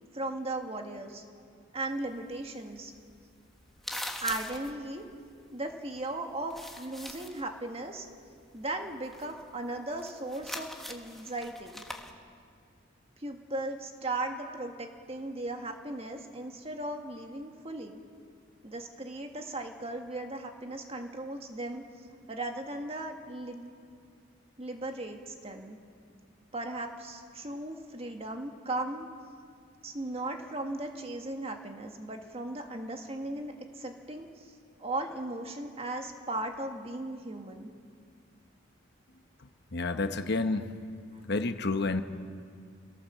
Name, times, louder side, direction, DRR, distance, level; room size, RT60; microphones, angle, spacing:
voice 1, 0.1-1.2 1.7-2.9 4.2-5.1 5.5-8.1 8.5-11.8 13.2-18.0 18.6-21.8 22.3-23.7 24.6-25.8 26.5-29.1 29.8-34.5 34.8-37.7 41.1-41.2, right 2 dB, 30° right, 4 dB, 1.8 m, -37 dB
sound 1, 1.9-6.1 6.4-7.5 7.7-12.1, left 1 dB, ahead, 1.4 m, -43 dB
voice 2, 39.7-40.7 41.3-42.0, left 3 dB, 55° left, 8 dB, 1.0 m, -29 dB
26.5 x 17.5 x 7.4 m, 2.2 s
head